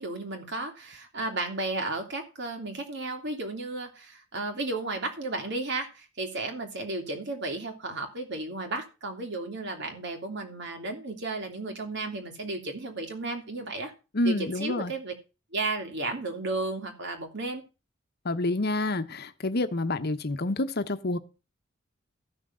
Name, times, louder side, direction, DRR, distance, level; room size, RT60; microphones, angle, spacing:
voice 1, 0.0-13.9 14.2-15.1 15.5-17.6, right 2 dB, 60° right, 2.6 m, -33 dB
voice 2, 14.1-14.9 18.2-21.2, left 2 dB, 55° left, 1.0 m, -28 dB
14.0 x 6.3 x 5.6 m
head